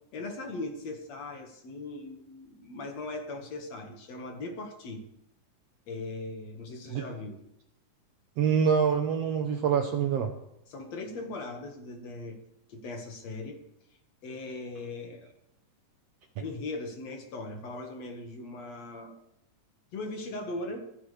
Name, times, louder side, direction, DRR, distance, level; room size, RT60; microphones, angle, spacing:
voice 1, 0.1-5.0 5.9-7.4 10.7-12.4 12.7-13.6 14.2-15.3 16.4-19.2 19.9-20.8, left 2 dB, 55° left, 3 dB, 2.7 m, -39 dB
voice 2, 8.4-10.3, right 7 dB, 65° right, 5 dB, 1.7 m, -25 dB
25.5 x 10.5 x 3.4 m, 0.79 s
omnidirectional pair, 3.8 m